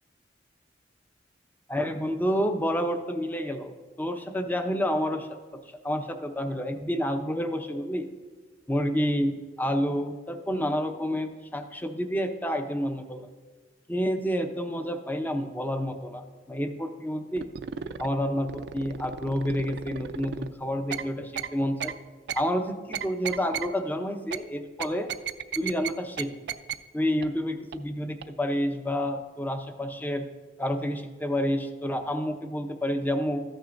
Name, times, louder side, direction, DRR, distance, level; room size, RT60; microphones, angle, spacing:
voice 1, 1.7-3.7 4.0-8.1 8.7-13.3 13.9-17.5 18.0-21.9 22.3-25.1 25.6-26.3 26.9-30.3 30.6-33.4, equal, 10° left, 6 dB, 0.6 m, -29 dB
sound 1, 17.4-18.1 18.5-20.5 20.9-21.0 21.4-21.5 21.8-21.9 22.3-22.4 22.9-23.7 24.3-24.4 24.8-25.9 26.2-26.3 26.5-26.7 27.2-27.3 27.7-27.8 28.2-28.3, right 8 dB, 65° right, 0.4 m, -33 dB
13.5 x 8.9 x 2.6 m, 1.3 s
head